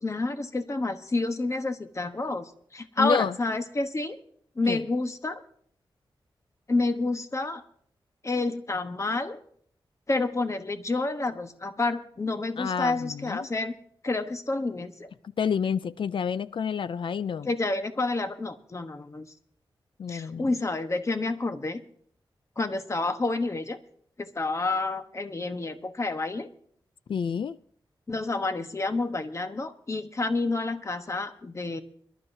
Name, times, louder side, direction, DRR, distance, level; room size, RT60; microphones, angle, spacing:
voice 1, 0.0-4.2 4.6-5.4 6.7-7.6 8.2-9.4 10.1-13.7 14.0-15.1 17.4-19.3 20.1-21.8 22.6-23.8 24.2-26.5 28.1-31.8, left 3 dB, 35° left, 8 dB, 1.1 m, -29 dB
voice 2, 3.0-3.4 4.7-4.8 12.6-13.4 15.4-17.5 20.0-20.5 27.1-27.6, left 7 dB, 70° left, 15 dB, 0.4 m, -29 dB
24.5 x 12.0 x 2.7 m, 0.63 s
wide cardioid pair, 80°, 9 cm